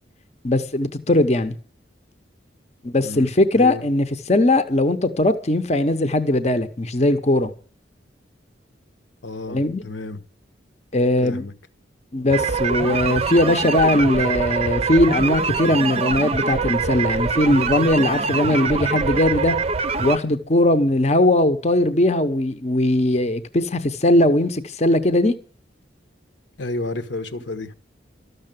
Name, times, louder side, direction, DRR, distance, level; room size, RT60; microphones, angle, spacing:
voice 1, 0.4-1.5 2.8-7.5 9.5-9.8 10.9-11.4 12.1-19.5 20.0-25.3, left 1 dB, 35° left, 0.9 m, -19 dB
voice 2, 9.2-10.2 11.2-11.5 26.6-27.7, left 2 dB, 80° left, 1.2 m, -31 dB
sound 1, 12.3-20.2, right 4 dB, 30° right, 0.6 m, -24 dB
13.0 x 6.7 x 9.0 m
head